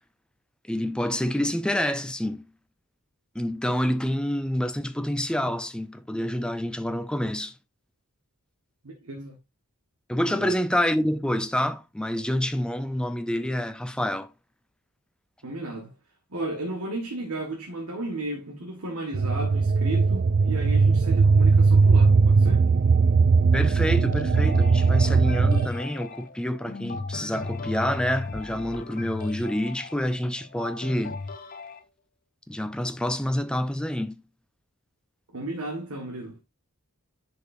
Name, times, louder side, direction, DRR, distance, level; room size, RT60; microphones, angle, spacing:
voice 1, 0.7-2.4 3.3-7.5 10.1-14.3 23.5-31.2 32.5-34.2, equal, 5° left, 0.5 m, -27 dB
voice 2, 8.8-9.4 10.3-10.5 15.4-15.9 16.3-22.7 35.3-36.4, right 2 dB, 80° right, 1.6 m, -34 dB
sound 1, 19.1-25.7, right 4 dB, 45° right, 0.3 m, -19 dB
sound 2, 23.9-31.8, left 3 dB, 40° left, 0.7 m, -36 dB
10.0 x 5.3 x 2.6 m
head